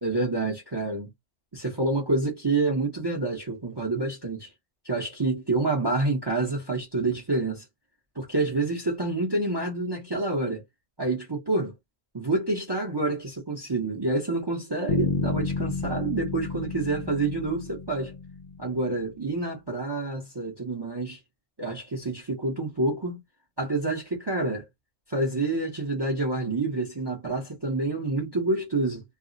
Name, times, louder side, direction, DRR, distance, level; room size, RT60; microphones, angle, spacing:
voice 1, 0.0-1.1 1.5-4.5 4.8-7.6 8.1-10.6 11.0-11.7 12.1-18.1 18.6-21.2 21.6-23.2 23.6-24.7 25.1-29.0, right 2 dB, 25° right, 0.7 m, -28 dB
Bass guitar, 14.9-18.9, left 5 dB, 70° left, 0.4 m, -31 dB
2.4 x 2.0 x 3.8 m
omnidirectional pair, 1.3 m